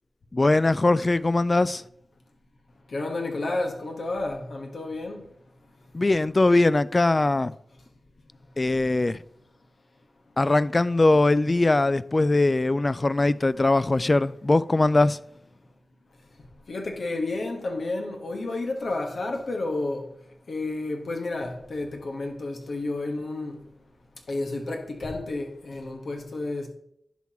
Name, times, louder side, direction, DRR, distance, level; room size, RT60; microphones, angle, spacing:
voice 1, 0.3-1.8 5.9-7.5 8.6-9.2 10.4-15.2, left 2 dB, 35° left, 0.3 m, -21 dB
voice 2, 2.9-5.2 16.7-20.1 20.5-23.6 24.3-26.7, left 2 dB, 75° left, 1.4 m, -31 dB
10.5 x 5.9 x 3.0 m
wide cardioid pair, 65°, 0 cm